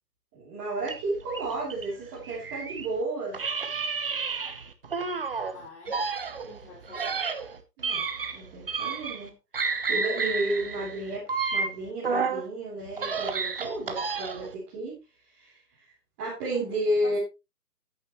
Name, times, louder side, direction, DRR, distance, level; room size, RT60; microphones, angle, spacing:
voice 1, 0.3-3.4 7.8-8.0 8.3-9.3 9.7-11.2 11.5-15.0 15.3-15.6 16.2-17.2, right 1 dB, 15° right, -9 dB, 3.2 m, -32 dB
sound 1, 0.8-2.9 3.3-5.5 5.9-9.3 9.5-12.5 12.8-14.5, right 5 dB, 35° right, 1.0 m, -31 dB
voice 2, 5.4-6.0 6.5-7.2 16.5-16.6 16.9-17.2, left 4 dB, 45° left, -2 dB, 4.0 m, -48 dB
12.5 x 9.1 x 3.1 m, 0.26 s
hypercardioid pair, 180°, 49 cm